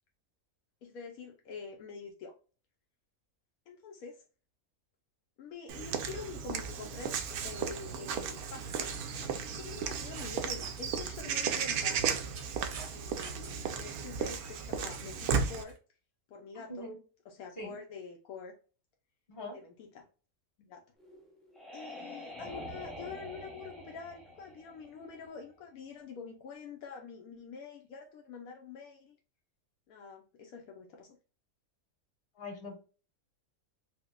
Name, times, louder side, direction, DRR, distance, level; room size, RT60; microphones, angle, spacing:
voice 1, 0.8-2.3 3.7-4.2 5.4-8.9 9.6-12.0 12.9-15.8 16.3-16.9 17.3-18.5 19.5-20.1 20.6-20.8 21.7-29.1 29.9-31.2, left 5 dB, 85° left, 2 dB, 1.1 m, -46 dB
Walk footsteps / Bird vocalization bird call bird song, 5.7-15.6, right 6 dB, 85° right, 1.1 m, -35 dB
sound 1, 8.6-9.0 10.1-10.9 11.7-13.7 14.9-15.8, right 5 dB, 55° right, 0.9 m, -49 dB
voice 2, 16.5-17.0 17.6-17.7 19.3-19.6 32.4-32.8, left 1 dB, 40° left, -2 dB, 2.0 m, -42 dB
sound 2, 21.0-25.6, left 1 dB, ahead, 0.5 m, -46 dB
4.8 x 2.1 x 2.2 m, 0.36 s
omnidirectional pair, 1.5 m